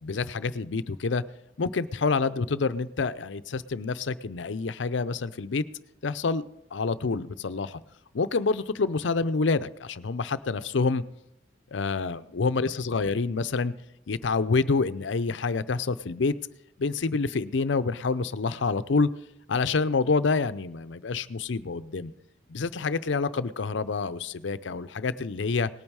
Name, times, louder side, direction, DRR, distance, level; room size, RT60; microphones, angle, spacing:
voice 1, 0.0-1.2 1.6-5.6 6.0-6.4 6.7-7.8 8.1-11.0 11.7-13.7 14.1-16.3 16.8-19.1 19.5-22.1 22.5-25.7, left 4 dB, 70° left, 14 dB, 0.5 m, -27 dB
19.0 x 8.9 x 4.7 m, 0.80 s
head